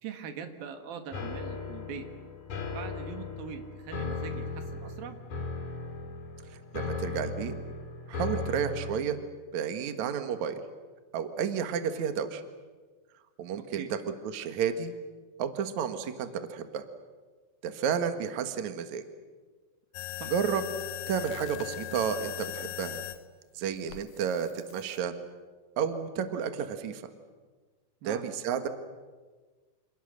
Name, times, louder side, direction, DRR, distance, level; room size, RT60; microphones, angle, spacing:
voice 1, 0.0-2.1 2.7-5.2 13.7-13.9 20.2-20.3 28.0-28.3, right 7 dB, 55° right, 7 dB, 3.0 m, -42 dB
sound 1, 1.1-9.0, left 4 dB, 40° left, 4.6 m, -37 dB
voice 2, 6.7-7.5 8.1-9.2 9.5-10.6 11.1-12.4 13.4-13.8 14.3-14.9 15.4-16.8 17.6-19.0 20.3-20.6 21.1-23.0 23.5-25.1 25.8-27.0 28.0-28.7, right 7 dB, 85° right, 8 dB, 1.6 m, -31 dB
sound 2, 19.9-23.2 23.9-25.0, left 14 dB, 85° left, 2.2 m, -39 dB
28.5 x 28.0 x 6.6 m, 1.4 s
omnidirectional pair, 5.9 m